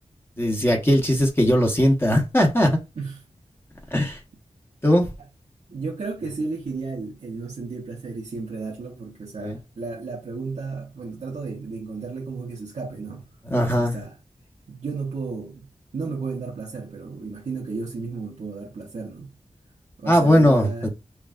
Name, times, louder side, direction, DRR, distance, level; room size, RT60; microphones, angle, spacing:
voice 1, 0.4-2.8 3.9-4.2 4.8-5.1 9.4-9.6 13.5-14.0 20.1-20.9, equal, 20° left, 1.0 m, -19 dB
voice 2, 5.7-13.3 13.8-14.2 14.7-19.3 20.0-20.9, right 4 dB, 75° right, 1.0 m, -33 dB
5.8 x 2.4 x 2.4 m
wide cardioid pair, 80°, 12 cm